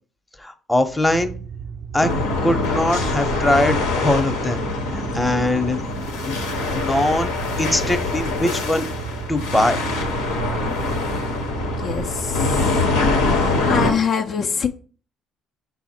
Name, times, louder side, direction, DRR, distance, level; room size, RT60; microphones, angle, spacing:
voice 1, 0.4-1.3 1.9-2.1 2.4-5.8 6.3-6.4 6.7-7.3 7.6-8.9 9.3-9.8, left 1 dB, 10° left, 7 dB, 0.7 m, -21 dB
sound 1, 1.1-12.3, right 7 dB, 55° right, 0.4 m, -34 dB
sound 2, 2.0-13.9, left 3 dB, 90° left, 0.8 m, -24 dB
voice 2, 11.6-12.8 13.7-14.7, left 6 dB, 55° left, 3 dB, 0.4 m, -24 dB
5.7 x 2.1 x 4.2 m, 0.39 s
hypercardioid pair, 60°, 0 cm